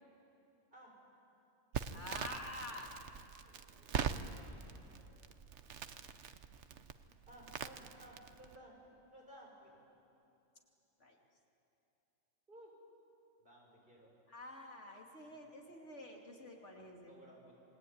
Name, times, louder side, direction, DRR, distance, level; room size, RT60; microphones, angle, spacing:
Crackle, 1.7-8.6, right 7 dB, 65° right, 1.2 m, -43 dB
voice 1, 1.9-2.9 11.0-11.2 14.3-17.1, left 1 dB, 65° left, 1 dB, 3.0 m, -48 dB
voice 2, 3.4-5.3 7.3-8.8 9.1-9.7 12.5-12.8 13.4-14.1 15.3-15.4 17.1-17.5, right 1 dB, 45° right, -3 dB, 6.9 m, -59 dB
28.5 x 21.5 x 9.4 m, 2.8 s
omnidirectional pair, 1.3 m